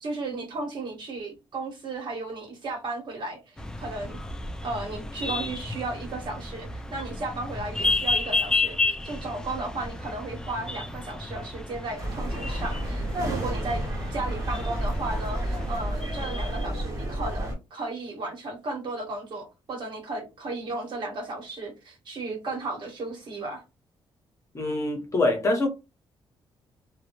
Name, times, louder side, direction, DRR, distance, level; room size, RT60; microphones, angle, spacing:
voice 1, 0.0-4.2 4.6-13.8 14.1-23.6, right 2 dB, 55° right, 1.1 m, -34 dB
sound 1, 3.6-16.7, left 3 dB, 5° left, 0.3 m, -32 dB
sound 2, 12.0-17.5, right 1 dB, 35° right, 0.9 m, -31 dB
voice 2, 24.5-25.7, left 2 dB, 30° left, 0.8 m, -24 dB
2.2 x 2.0 x 2.9 m
cardioid pair, 105°, 9 cm